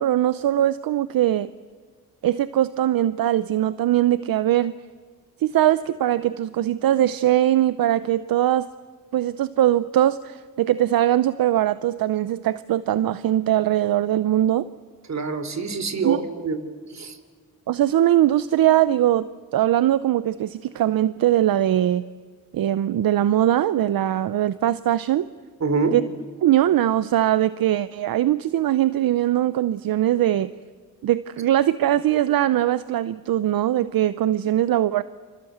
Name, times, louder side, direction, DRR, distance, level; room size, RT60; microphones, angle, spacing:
voice 1, 0.0-1.5 2.2-4.7 5.4-8.7 9.1-14.7 16.0-16.2 17.7-22.0 22.5-25.3 25.9-26.0 26.4-30.5 31.0-35.0, right 12 dB, 70° right, 15 dB, 0.7 m, -21 dB
voice 2, 15.1-16.6 16.9-17.2 25.6-25.9, right 4 dB, 50° right, 11 dB, 3.2 m, -25 dB
27.0 x 26.5 x 8.0 m, 1.5 s
cardioid pair, 70°, 36 cm